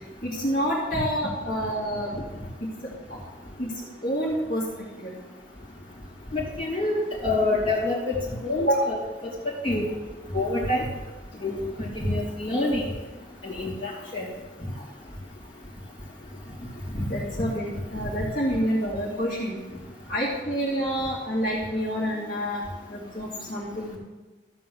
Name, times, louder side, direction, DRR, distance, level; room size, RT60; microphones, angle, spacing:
voice 1, 0.2-2.1 3.1-3.2 3.6-3.7 4.0-4.6 5.0-5.1 8.6-8.9 17.1-19.6 20.1-22.6 22.9-24.0, equal, 50° left, -6 dB, 2.5 m, -27 dB
voice 2, 6.3-8.2 8.4-9.0 9.6-10.0 10.3-10.8 11.4-12.8 13.4-14.3 16.9-17.0, left 2 dB, 30° left, -5 dB, 2.9 m, -27 dB
13.5 x 4.5 x 7.8 m, 1.2 s
head